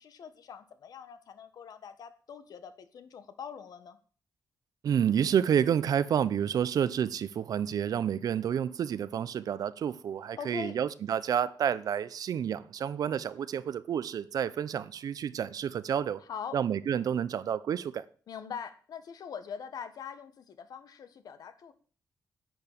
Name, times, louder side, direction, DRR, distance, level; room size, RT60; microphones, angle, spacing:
voice 1, 0.0-4.0 10.4-10.8 16.2-16.6 18.3-21.7, left 7 dB, 70° left, 1.3 m, -43 dB
voice 2, 4.8-16.2 16.5-18.0, right 8 dB, 65° right, 0.6 m, -29 dB
10.5 x 9.0 x 6.6 m
wide cardioid pair, 145°, 7 cm